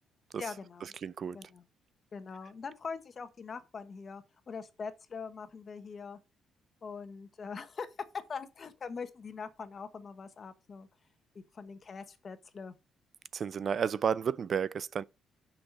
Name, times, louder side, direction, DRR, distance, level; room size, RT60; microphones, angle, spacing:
voice 1, 0.4-0.9 1.3-1.6 2.1-6.2 6.8-7.9 8.3-10.9 11.3-12.7, left 5 dB, 45° left, 1.2 m, -43 dB
voice 2, 1.0-1.4 13.3-15.0, right 7 dB, 50° right, 0.4 m, -31 dB
6.9 x 5.7 x 5.2 m
cardioid pair, 90°, 0 cm